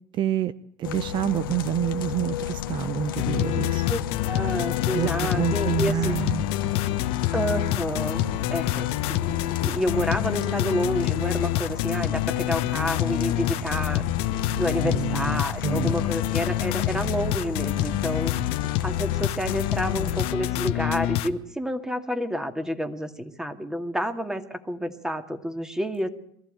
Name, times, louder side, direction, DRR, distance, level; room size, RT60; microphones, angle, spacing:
voice 1, 0.1-0.5 0.8-3.9 4.9-6.5 14.8-16.0, right 11 dB, 45° right, 15 dB, 0.7 m, -28 dB
sound 1, 0.8-20.3, left 11 dB, 85° left, 1.1 m, -33 dB
sound 2, 3.2-21.3, left 13 dB, 60° left, 1.2 m, -27 dB
voice 2, 3.9-6.2 7.3-8.2 8.5-14.0 14.6-18.3 18.8-26.1, equal, 5° right, 7 dB, 2.3 m, -29 dB
23.0 x 14.5 x 9.1 m, 0.71 s
supercardioid pair, 95°, 11 cm